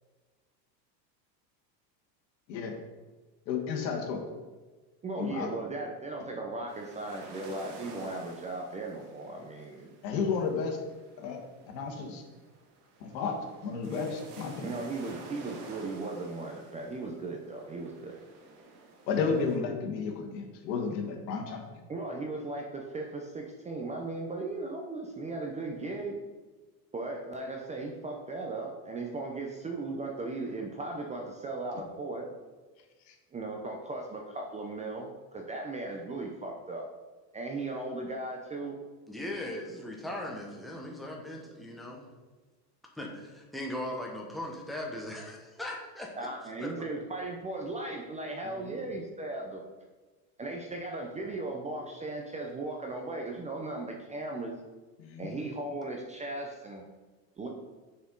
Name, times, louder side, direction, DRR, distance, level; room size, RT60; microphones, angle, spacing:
voice 1, 3.5-4.2 5.1-5.5 10.0-10.8 11.2-11.4 11.7-12.2 13.0-14.7 19.1-21.6 55.0-55.3, left 5 dB, 85° left, 3 dB, 1.4 m, -32 dB
voice 2, 5.0-9.9 14.6-18.2 21.9-26.2 26.9-32.3 33.3-36.9 37.3-38.8 46.2-49.6 50.4-54.5 55.2-56.9 57.4-57.5, right 2 dB, 15° right, 1 dB, 0.4 m, -37 dB
sound 1, 6.7-19.6, right 3 dB, 50° right, 1.3 m, -50 dB
voice 3, 39.1-42.1 42.9-46.1 46.6-46.9 48.4-48.9, left 1 dB, ahead, -1 dB, 0.9 m, -39 dB
6.9 x 4.3 x 3.8 m, 1.3 s
supercardioid pair, 115°, 50 cm